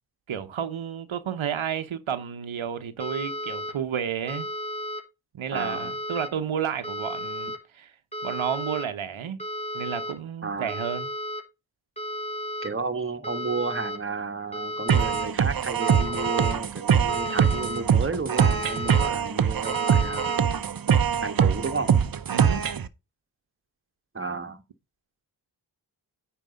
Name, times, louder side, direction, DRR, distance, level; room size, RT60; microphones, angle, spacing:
voice 1, 0.3-4.5 5.3-8.0 8.2-9.4 9.7-11.1 22.3-22.7, right 8 dB, 80° right, 0.9 m, -31 dB
sound 1, 3.0-3.7 4.3-5.0 5.6-6.3 6.8-7.6 8.1-8.8 9.4-10.1 10.7-11.4 12.0-12.7 13.2-14.0 14.5-15.3 15.8-16.5 17.1-17.8 18.4-19.1 19.6-20.4, left 1 dB, 15° left, 3.8 m, -33 dB
voice 2, 5.5-5.9 10.4-10.7 12.6-20.4 21.2-21.9 24.1-24.6, right 4 dB, 25° right, 1.3 m, -32 dB
sound 2, 14.9-22.9, right 7 dB, 45° right, 0.7 m, -23 dB
9.3 x 4.6 x 5.0 m
cardioid pair, 60°, 47 cm